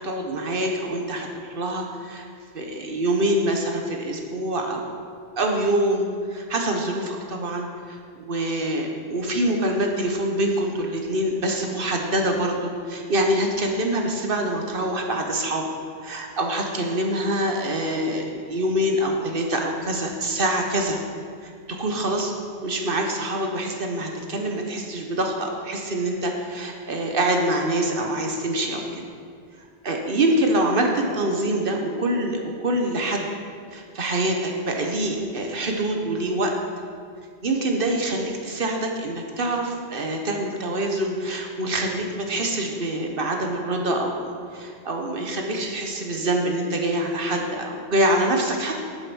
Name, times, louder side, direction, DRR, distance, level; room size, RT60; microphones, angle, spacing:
voice 1, 0.0-2.3 2.5-4.8 5.4-15.6 16.0-21.0 21.4-22.3 22.6-29.0 29.8-33.3 33.7-36.5 37.4-48.8, right 1 dB, 55° right, 2 dB, 1.2 m, -25 dB
8.7 x 7.1 x 6.2 m, 2.1 s
omnidirectional pair, 1.1 m